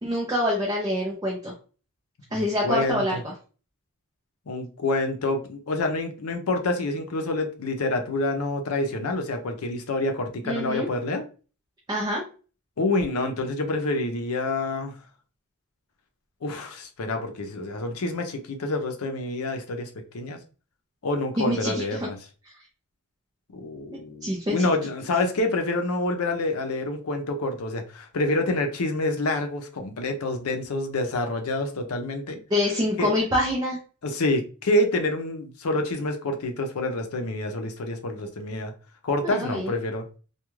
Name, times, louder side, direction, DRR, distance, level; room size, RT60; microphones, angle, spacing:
voice 1, 0.0-1.5 2.3-3.3 10.5-10.9 11.9-12.2 21.4-22.1 24.2-24.7 32.5-33.8 39.2-39.7, left 1 dB, 20° right, -3 dB, 0.5 m, -26 dB
voice 2, 2.3-3.2 4.5-11.2 12.8-14.9 16.4-19.9 20.1-20.4 21.0-22.2 23.5-32.4 33.0-33.1 34.0-38.7 39.0-40.0, left 2 dB, 80° left, 5 dB, 0.6 m, -27 dB
2.3 x 2.2 x 3.0 m, 0.37 s
head